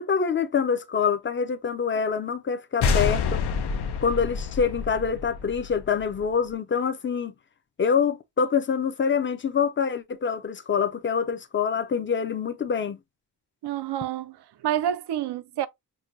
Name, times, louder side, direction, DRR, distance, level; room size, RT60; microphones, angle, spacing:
voice 1, 0.0-3.4 4.0-7.3 7.8-13.0, left 6 dB, 30° left, 0.5 m, -25 dB
sound 1, 2.8-6.3, left 5 dB, 75° left, 0.7 m, -27 dB
voice 2, 13.6-14.4 14.6-15.7, right 11 dB, 85° right, 0.5 m, -28 dB
6.1 x 2.2 x 2.5 m
wide cardioid pair, 140°, 40 cm